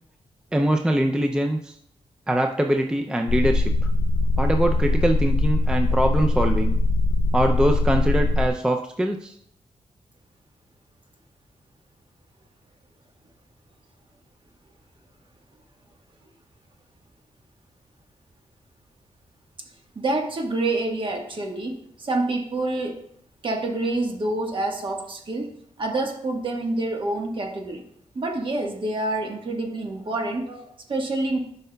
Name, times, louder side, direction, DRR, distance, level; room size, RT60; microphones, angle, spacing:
voice 1, 0.5-1.7 2.3-3.7 4.4-6.8 7.3-9.3, right 1 dB, 5° right, 4 dB, 0.4 m, -23 dB
sound 1, 3.3-8.5, left 2 dB, 85° left, 0.5 m, -21 dB
voice 2, 19.9-23.0 23.4-25.5 25.8-27.8 28.1-31.4, right 2 dB, 45° right, 2 dB, 1.2 m, -27 dB
11.5 x 5.5 x 2.2 m, 0.69 s
wide cardioid pair, 160°, 12 cm